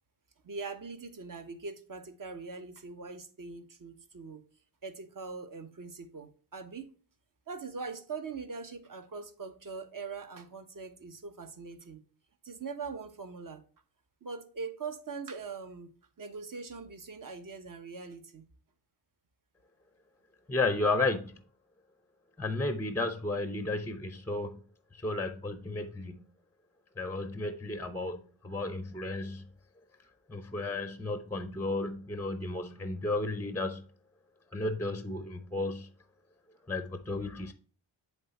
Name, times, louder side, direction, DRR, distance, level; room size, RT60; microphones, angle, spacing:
voice 1, 0.4-4.4 4.8-6.9 7.5-12.0 12.4-13.6 14.2-18.5, right 4 dB, 40° right, 1.1 m, -42 dB
voice 2, 20.5-21.3 22.4-24.6 24.9-26.2 27.0-29.5 30.3-33.8 34.5-35.9 36.7-37.5, left 2 dB, 5° left, 0.7 m, -33 dB
7.8 x 3.5 x 4.2 m
cardioid pair, 65°, 50 cm